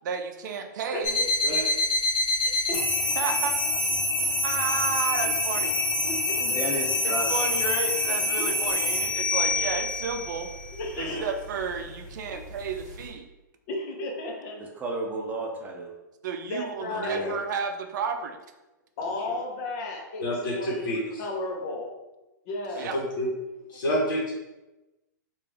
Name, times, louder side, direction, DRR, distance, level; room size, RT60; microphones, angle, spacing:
voice 1, 0.0-1.2 3.2-3.5 4.4-5.7 7.0-10.5 10.9-13.3 16.2-18.4 22.8-23.0, right 6 dB, 65° right, 6 dB, 0.5 m, -32 dB
voice 2, 0.9-1.2 2.4-3.1 5.6-5.7 6.1-6.4 8.4-8.5 10.8-11.3 13.7-14.6 16.5-17.2 19.0-20.2 20.5-20.9 21.2-21.9 22.4-22.9, left 2 dB, 50° left, 1 dB, 0.9 m, -34 dB
sound 1, 1.0-13.1, left 2 dB, 30° left, 1.3 m, -27 dB
voice 3, 6.4-7.3 14.6-15.9, right 1 dB, 15° right, 0 dB, 0.7 m, -32 dB
voice 4, 16.9-17.4 20.2-21.2 22.9-23.3 23.7-24.3, equal, 65° left, -5 dB, 1.2 m, -29 dB
3.4 x 2.5 x 3.4 m, 1.0 s
hypercardioid pair, 130°, 11 cm